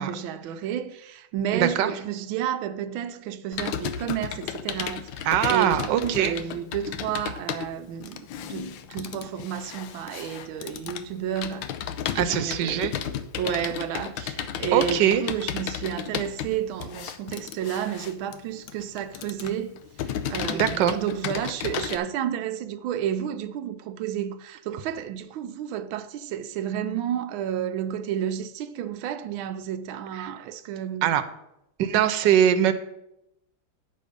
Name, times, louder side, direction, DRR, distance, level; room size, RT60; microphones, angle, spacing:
voice 1, 0.0-11.7 12.1-12.9 13.3-31.2, right 9 dB, 90° right, 1.4 m, -31 dB
voice 2, 1.5-1.9 5.2-6.3 12.1-12.9 14.7-15.2 20.6-21.0 30.1-30.3 31.0-31.2 31.8-32.7, right 10 dB, 70° right, 1.3 m, -22 dB
Computer keyboard, 3.5-22.0, left 9 dB, 80° left, 1.4 m, -34 dB
10.0 x 6.6 x 5.2 m
omnidirectional pair, 2.1 m